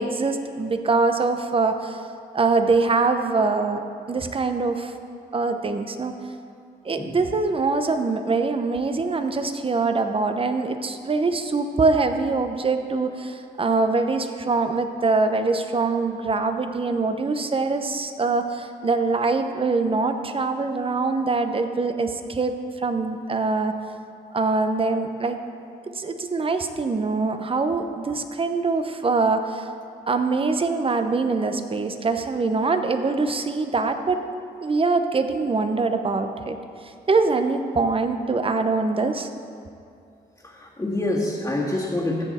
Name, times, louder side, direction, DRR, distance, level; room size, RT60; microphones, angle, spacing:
voice 1, 0.0-2.0 2.3-4.9 5.3-6.2 6.8-23.7 24.3-25.4 25.9-29.7 30.1-34.2 34.6-36.6 37.1-39.3, right 3 dB, 35° right, 7 dB, 0.8 m, -23 dB
voice 2, 40.4-42.2, left 1 dB, 20° left, -7 dB, 1.9 m, -26 dB
14.0 x 7.0 x 4.3 m, 2.5 s
cardioid pair, 80°, 17 cm